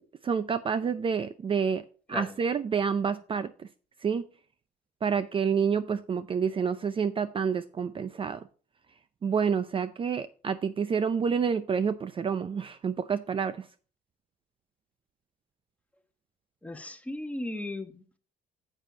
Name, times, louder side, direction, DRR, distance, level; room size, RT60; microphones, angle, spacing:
voice 1, 0.2-1.8 2.1-3.5 4.0-4.2 5.0-8.4 9.2-13.7, right 6 dB, 30° right, 13 dB, 0.5 m, -28 dB
voice 2, 16.6-18.2, left 1 dB, 10° left, 7 dB, 1.3 m, -37 dB
9.9 x 7.6 x 2.8 m, 0.39 s
cardioid pair, 110°, 17 cm